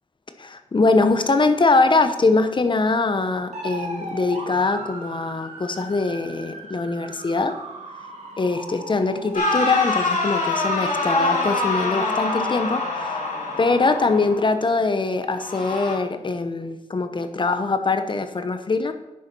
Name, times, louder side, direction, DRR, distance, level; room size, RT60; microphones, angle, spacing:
voice 1, 0.4-7.5 8.4-13.3 13.6-18.9, left 3 dB, 40° left, 8 dB, 0.9 m, -22 dB
sound 1, 3.5-14.2, right 2 dB, 65° right, 2.6 m, -39 dB
sound 2, 9.3-14.5 15.3-15.9, left 3 dB, 85° left, 3.3 m, -25 dB
9.7 x 6.8 x 6.1 m, 0.98 s
wide cardioid pair, 105°, 13 cm